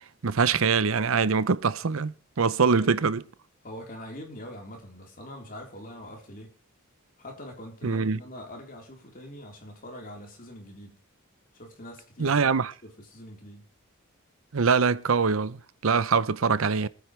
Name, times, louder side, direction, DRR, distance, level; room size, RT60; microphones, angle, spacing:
voice 1, 0.2-3.2 7.8-8.2 12.2-12.7 14.5-16.9, right 5 dB, 75° right, 0.7 m, -24 dB
voice 2, 2.7-3.0 3.6-6.6 7.2-11.0 11.5-12.5 12.8-13.7, left 1 dB, 40° left, 3.9 m, -43 dB
25.0 x 9.4 x 3.3 m
head